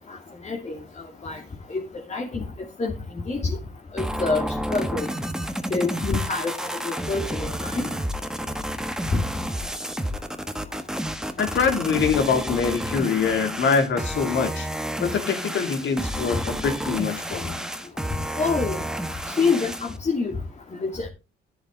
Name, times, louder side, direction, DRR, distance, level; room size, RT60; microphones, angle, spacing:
voice 1, 0.4-0.8 1.2-1.4 1.7-1.8 2.1-2.4 2.8-2.9 3.3-3.6 3.9-4.4 4.7-5.1 5.7-6.5 6.8-7.9 9.1-9.2 18.4-18.8 19.4-20.3 20.8-21.1, left 4 dB, 35° left, -1 dB, 2.9 m, -25 dB
sound 1, 4.0-20.0, equal, 5° right, 1.5 m, -30 dB
voice 2, 11.4-14.7 15.0-17.6, left 6 dB, 65° left, 6 dB, 3.1 m, -24 dB
11.0 x 10.5 x 4.0 m, 0.28 s
cardioid pair, 90°, 20 cm